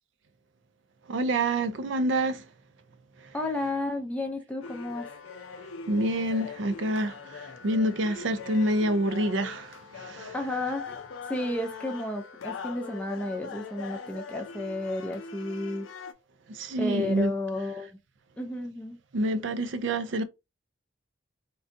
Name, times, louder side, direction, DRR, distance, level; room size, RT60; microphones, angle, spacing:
voice 1, 1.1-2.4 5.9-7.1 7.6-9.7 16.6-17.3 19.1-20.2, right 1 dB, 75° right, 0.5 m, -26 dB
voice 2, 3.3-5.1 10.3-10.9 11.3-15.9 16.8-17.9 18.4-19.0, left 1 dB, 5° left, 0.4 m, -32 dB
sound 1, 4.6-16.1, left 5 dB, 85° left, 0.5 m, -41 dB
3.7 x 2.2 x 2.5 m
head